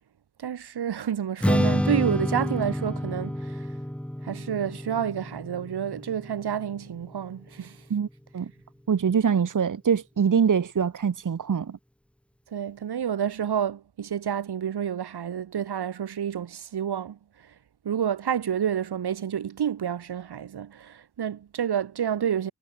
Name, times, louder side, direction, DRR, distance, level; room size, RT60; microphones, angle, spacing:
voice 1, 0.4-3.7 4.2-7.8 12.5-17.2 17.8-22.5, right 9 dB, 75° right, 2.0 m, -29 dB
Strum, 1.4-7.7, equal, 5° left, 2.0 m, -29 dB
voice 2, 8.9-11.8, right 7 dB, 50° right, 1.5 m, -23 dB
cardioid pair, 90°, 39 cm